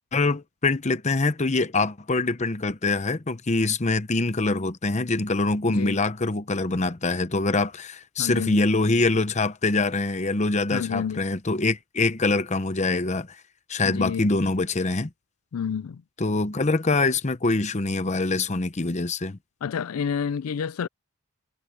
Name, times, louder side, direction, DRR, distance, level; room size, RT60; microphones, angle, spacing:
voice 1, 0.1-13.3 13.7-15.1 16.2-19.4, left 3 dB, 35° left, 0.9 m, -24 dB
voice 2, 5.7-6.0 8.2-8.6 10.7-11.3 13.8-14.3 15.5-16.0 19.6-20.9, left 7 dB, 90° left, 0.4 m, -29 dB
head